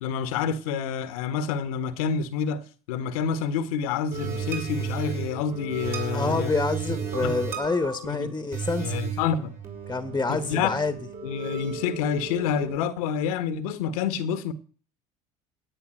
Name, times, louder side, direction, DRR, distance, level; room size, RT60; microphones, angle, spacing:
voice 1, 0.0-2.6 2.9-6.5 7.2-7.3 8.0-8.3 8.8-9.5 10.3-10.8 11.2-14.5, left 7 dB, 70° left, 1.4 m, -28 dB
sound 1, 4.1-12.8, right 6 dB, 50° right, 5.0 m, -34 dB
voice 2, 6.1-9.0 9.9-10.9, left 3 dB, 15° left, 1.5 m, -27 dB
17.0 x 9.3 x 6.5 m
hypercardioid pair, 65°, 19 cm